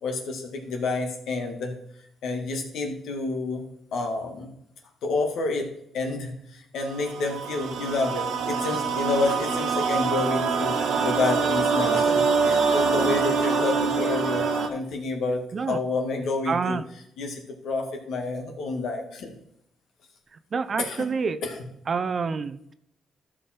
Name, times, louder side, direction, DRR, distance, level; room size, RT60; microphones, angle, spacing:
voice 1, 0.0-3.6 3.9-4.5 5.0-16.8 17.2-19.3 20.8-21.1 21.4-21.6, left 3 dB, 75° left, 3 dB, 2.1 m, -29 dB
sound 1, 6.8-14.7, right 5 dB, 80° right, 1.6 m, -24 dB
voice 2, 16.5-16.8 20.5-21.4 21.9-22.7, right 5 dB, 45° right, 12 dB, 0.6 m, -27 dB
13.5 x 5.3 x 4.5 m, 0.73 s
cardioid pair, 90°, 0 cm